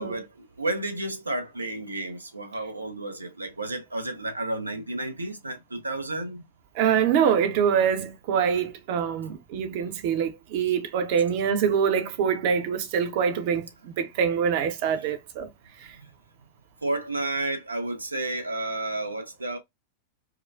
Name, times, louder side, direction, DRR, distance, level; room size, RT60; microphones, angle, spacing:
voice 1, 0.0-6.4 15.0-15.1 16.0-16.1 16.8-19.6, right 2 dB, 80° right, 0.8 m, -31 dB
voice 2, 6.7-15.5, right 7 dB, 50° right, 0.9 m, -25 dB
4.7 x 2.3 x 2.4 m
figure-of-eight pair, 90°, 0 cm